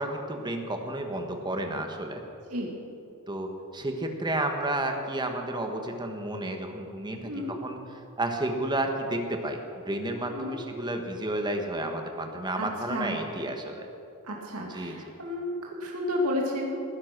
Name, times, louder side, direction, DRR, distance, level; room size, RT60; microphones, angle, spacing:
voice 1, 0.0-2.2 3.3-13.9 14.7-15.0, right 1 dB, 20° right, 4 dB, 1.5 m, -31 dB
voice 2, 7.2-7.5 10.3-10.5 12.6-13.2 14.2-16.8, left 1 dB, 80° right, -1 dB, 2.4 m, -32 dB
19.0 x 10.5 x 6.1 m, 2.6 s
head